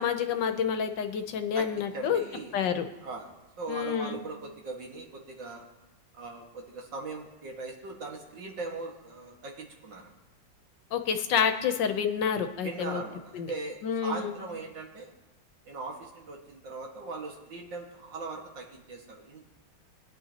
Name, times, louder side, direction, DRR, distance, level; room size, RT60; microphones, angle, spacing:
voice 1, 0.0-2.2 2.5-2.9 3.7-4.2 10.9-13.0 13.3-13.5 13.8-14.3, left 7 dB, 75° left, 8 dB, 1.5 m, -28 dB
voice 2, 1.9-2.6 3.0-3.3 3.6-5.7 6.1-10.1 12.6-15.1 15.7-19.5, right 3 dB, 75° right, 0 dB, 2.4 m, -40 dB
20.5 x 9.6 x 2.9 m, 0.98 s
omnidirectional pair, 2.0 m